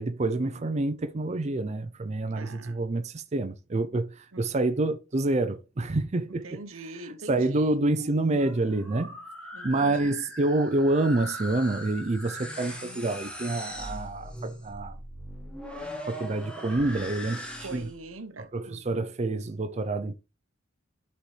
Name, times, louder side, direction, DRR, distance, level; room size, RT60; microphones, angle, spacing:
voice 1, 0.0-6.6 7.3-9.1 9.6-15.0 16.1-17.8 18.5-20.1, right 2 dB, 35° right, 0.5 m, -27 dB
voice 2, 2.3-2.8 4.3-4.4 6.3-7.8 9.5-10.2 17.6-19.1, right 2 dB, 80° right, 0.9 m, -43 dB
sound 1, 8.0-18.0, equal, 5° left, 1.4 m, -40 dB
11.5 x 4.3 x 3.2 m
head